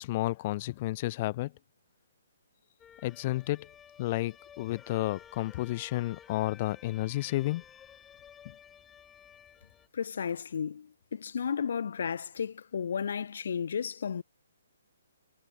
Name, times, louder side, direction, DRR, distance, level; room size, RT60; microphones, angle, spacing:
voice 1, 0.0-1.5 3.0-3.7 4.0-7.6, left 17 dB, 35° left, 0.3 m, -31 dB
sound 1, 2.8-9.9, left 8 dB, 10° left, 6.2 m, -54 dB
voice 2, 9.9-14.2, left 7 dB, 65° left, 0.9 m, -33 dB
hypercardioid pair, 155°, 0 cm